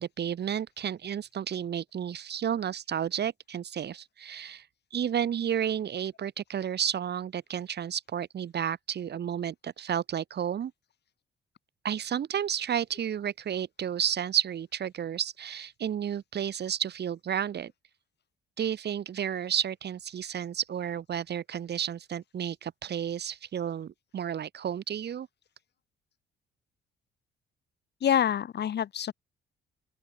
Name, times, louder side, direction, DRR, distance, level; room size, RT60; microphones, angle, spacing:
voice 1, 0.0-4.6 4.9-10.7 11.8-17.7 18.6-25.3, right 9 dB, 55° right, 2.4 m, -32 dB
voice 2, 28.0-29.1, left 9 dB, 60° left, 1.9 m, -26 dB
open air
cardioid pair, 90°, 20 cm